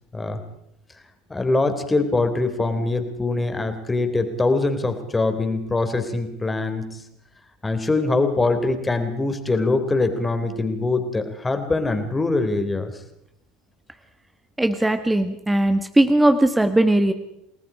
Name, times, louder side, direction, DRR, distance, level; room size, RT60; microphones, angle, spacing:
voice 1, 1.3-7.0 7.6-12.9, left 3 dB, 15° left, 8 dB, 3.3 m, -23 dB
voice 2, 14.6-17.1, right 1 dB, 10° right, 8 dB, 1.5 m, -19 dB
29.0 x 19.5 x 5.0 m, 0.79 s
hypercardioid pair, 75°, 0 cm